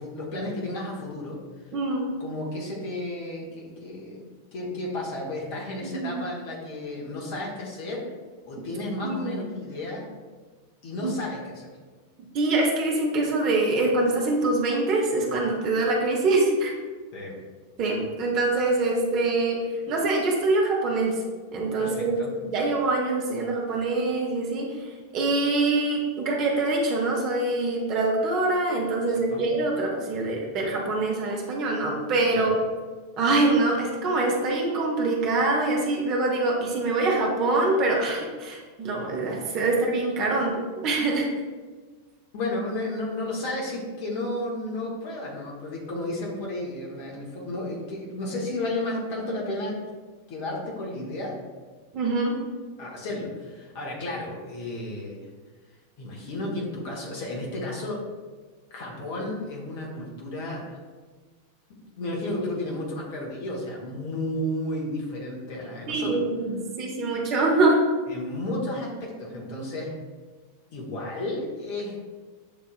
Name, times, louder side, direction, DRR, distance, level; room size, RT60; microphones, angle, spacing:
voice 1, 0.0-1.4 2.2-4.2 4.5-8.1 8.5-10.1 10.8-11.7 17.1-17.3 21.8-22.3 29.3-29.4 32.3-32.5 40.3-40.4 42.3-49.8 50.3-51.4 52.8-55.3 56.0-58.0 58.7-60.8 62.0-66.2 68.1-69.9 70.7-72.0, left 1 dB, 45° left, -3 dB, 1.1 m, -32 dB
voice 2, 1.7-2.1 5.8-6.1 9.0-9.3 11.0-11.1 12.3-16.7 17.8-21.2 21.5-22.2 22.4-24.9 25.1-32.5 33.2-41.3 51.9-52.4 65.9-67.8, right 2 dB, 40° right, -1 dB, 0.9 m, -24 dB
7.0 x 2.8 x 2.4 m, 1.4 s
figure-of-eight pair, 90°, 0 cm